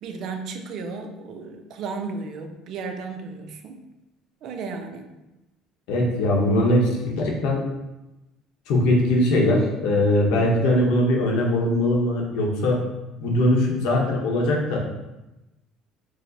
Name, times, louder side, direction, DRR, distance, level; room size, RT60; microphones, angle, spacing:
voice 1, 0.0-3.8 4.4-5.1, right 4 dB, 50° right, 5 dB, 0.4 m, -34 dB
voice 2, 5.9-7.6 8.7-12.8 13.2-14.8, left 1 dB, 75° left, -1 dB, 0.8 m, -21 dB
4.7 x 2.0 x 2.6 m, 0.99 s
cardioid pair, 150°, 0 cm